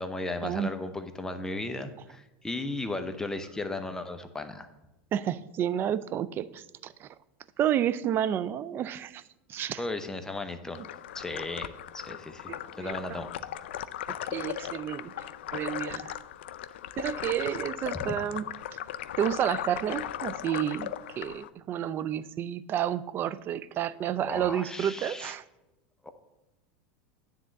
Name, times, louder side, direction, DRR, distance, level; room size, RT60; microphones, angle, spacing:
voice 1, 0.0-4.7 9.7-10.8 11.1-12.5 12.8-13.3 17.9-18.1 24.3-25.3 26.0-26.1, left 2 dB, 10° left, 7 dB, 0.8 m, -36 dB
voice 2, 5.1-7.1 7.6-9.2 9.5-9.8 12.5-13.2 14.1-15.2 15.5-16.1 17.0-18.4 19.2-25.4, right 10 dB, 40° right, 15 dB, 0.4 m, -30 dB
sound 1, 10.8-21.5, left 11 dB, 80° left, 0.4 m, -37 dB
9.8 x 3.7 x 7.1 m, 0.98 s
supercardioid pair, 110°, 6 cm